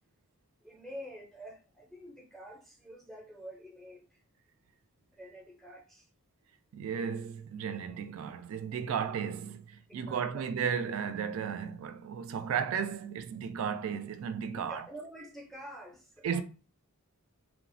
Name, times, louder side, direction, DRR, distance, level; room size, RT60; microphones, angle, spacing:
voice 1, 0.6-4.2 5.1-6.1 9.9-10.4 14.5-16.4, equal, ahead, 0.5 m, -48 dB
voice 2, 6.7-14.8 16.2-16.4, right 7 dB, 75° right, 0.3 m, -34 dB
3.3 x 2.0 x 2.5 m
head